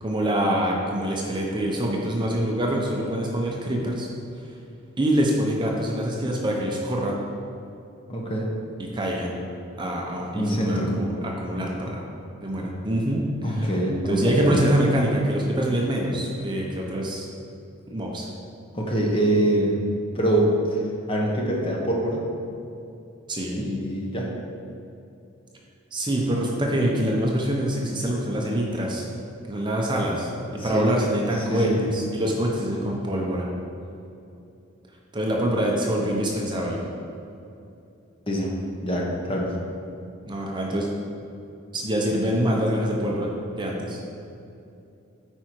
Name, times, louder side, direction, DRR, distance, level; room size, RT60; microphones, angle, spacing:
voice 1, 0.0-4.1 5.0-7.2 8.9-9.4 9.8-12.0 12.4-13.7 14.1-17.3 17.9-18.2 23.3-23.7 25.9-29.1 29.5-33.5 35.1-36.8 40.3-40.9 41.7-43.3 43.6-44.0, right 1 dB, 20° right, -2 dB, 0.7 m, -25 dB
voice 2, 8.1-8.5 10.3-10.9 13.4-14.7 18.7-19.7 20.1-20.8 21.1-22.2 23.5-24.3 30.6-30.9 31.4-31.8 38.3-38.5 38.8-39.5, right 1 dB, 25° left, -2 dB, 1.0 m, -24 dB
8.8 x 4.8 x 4.6 m, 2.7 s
head